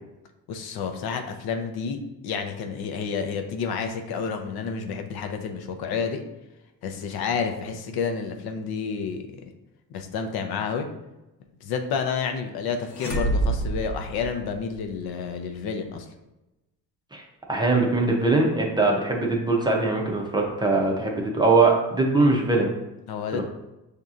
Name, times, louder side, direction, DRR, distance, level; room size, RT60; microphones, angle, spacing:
voice 1, 0.5-6.2 6.8-9.3 9.9-10.9 11.6-16.1 23.1-23.4, left 6 dB, 75° left, 5 dB, 0.6 m, -30 dB
sound 1, 12.9-14.9, right 2 dB, 45° left, 0.8 m, -27 dB
voice 2, 17.5-22.7 23.3-23.4, right 3 dB, 10° right, -1 dB, 0.5 m, -21 dB
6.5 x 2.7 x 2.4 m, 0.97 s
cardioid pair, 150°, 38 cm